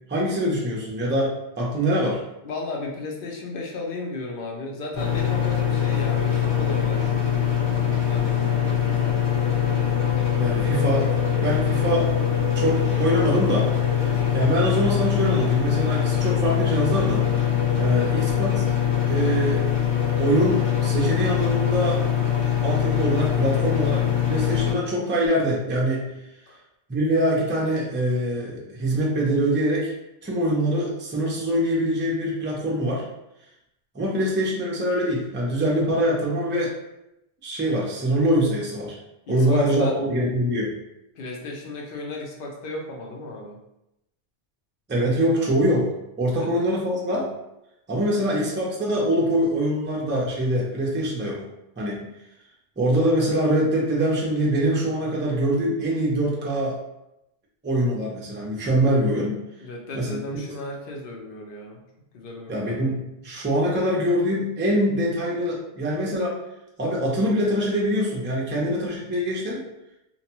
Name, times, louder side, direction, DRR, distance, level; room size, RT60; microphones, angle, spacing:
voice 1, 0.1-2.2 10.4-11.1 11.4-12.1 12.5-13.7 14.0-17.2 17.7-18.6 19.1-19.6 20.2-22.0 22.4-26.1 26.9-29.9 30.2-33.0 33.9-36.7 37.4-39.0 39.3-40.7 44.9-45.9 46.2-47.3 47.9-51.4 51.8-52.1 52.8-56.8 57.6-59.4 59.9-60.2 62.5-66.4 66.8-69.6, right 1 dB, 20° right, -4 dB, 0.3 m, -24 dB
voice 2, 2.4-9.2 18.0-18.2 26.5-26.6 39.2-39.9 41.1-43.6 46.3-46.5 48.1-48.2 59.6-61.8 62.1-62.9, left 2 dB, 60° left, -1 dB, 0.7 m, -35 dB
sound 1, 4.9-24.7, left 9 dB, 30° left, 0.9 m, -23 dB
2.6 x 2.2 x 2.8 m, 0.88 s
omnidirectional pair, 1.1 m